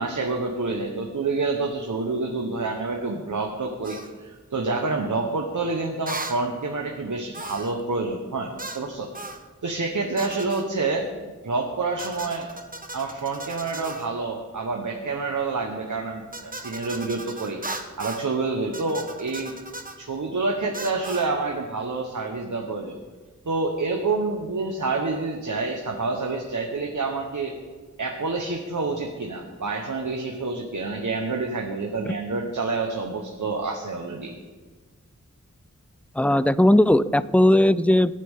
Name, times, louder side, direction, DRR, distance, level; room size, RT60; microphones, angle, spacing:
voice 1, 0.0-9.1 9.6-11.1 11.4-12.5 12.9-17.6 18.0-19.6 20.0-23.0 23.4-27.6 28.0-34.3, right 3 dB, 75° right, 2 dB, 1.3 m, -28 dB
sound 1, 3.8-4.1 6.1-6.4 7.3-7.8 8.6-8.9 9.1-9.4 10.2-10.7 12.0-14.1 16.3-18.3 18.7-20.0 20.7-21.3, right 2 dB, 25° right, 1.2 m, -37 dB
voice 2, 36.2-38.1, left 1 dB, 5° left, 15 dB, 0.4 m, -18 dB
24.5 x 9.9 x 3.8 m, 1.4 s
wide cardioid pair, 65°, 31 cm